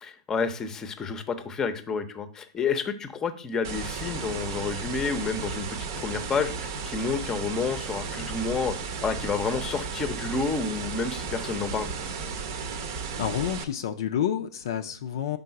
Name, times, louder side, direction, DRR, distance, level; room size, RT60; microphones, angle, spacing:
voice 1, 0.0-8.8 9.0-11.9, left 5 dB, 20° left, 11 dB, 0.6 m, -30 dB
sound 1, 3.6-13.6, right 5 dB, 55° right, 0.7 m, -34 dB
voice 2, 13.2-15.4, left 9 dB, 65° left, 7 dB, 0.4 m, -29 dB
5.3 x 3.7 x 5.6 m, 0.43 s
figure-of-eight pair, 100°, 3 cm